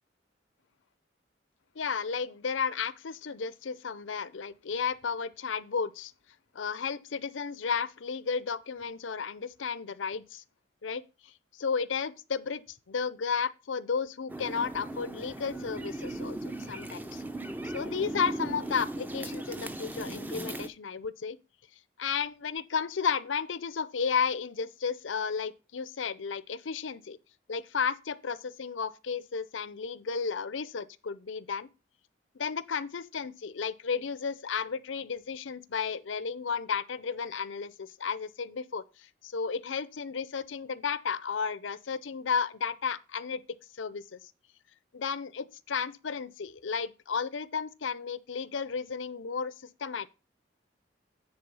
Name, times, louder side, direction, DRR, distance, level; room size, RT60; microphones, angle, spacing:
voice 1, 1.8-6.1 6.5-10.4 10.8-17.2 17.6-21.4 22.0-27.2 27.5-31.7 32.3-43.4 43.7-44.2 44.9-49.5 49.8-50.1, left 6 dB, 85° left, 0.6 m, -33 dB
sound 1, 14.3-20.7, right 1 dB, 10° right, 0.5 m, -38 dB
9.7 x 4.0 x 5.5 m
head